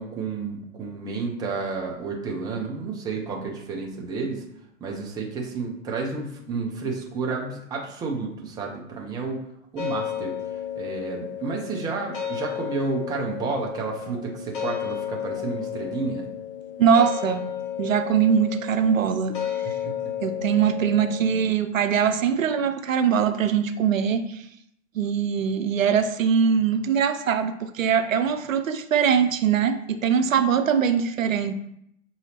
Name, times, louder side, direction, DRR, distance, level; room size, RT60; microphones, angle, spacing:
voice 1, 0.0-4.4 4.8-9.4 9.7-16.3 19.8-19.9, right 4 dB, 10° right, 0 dB, 0.5 m, -31 dB
sound 1, 9.8-21.5, left 9 dB, 40° left, 1.0 m, -33 dB
voice 2, 16.8-17.5 17.8-19.4 20.2-24.4 24.9-31.5, right 7 dB, 80° right, 9 dB, 0.5 m, -22 dB
6.1 x 2.8 x 2.9 m, 0.75 s
figure-of-eight pair, 110°, 39 cm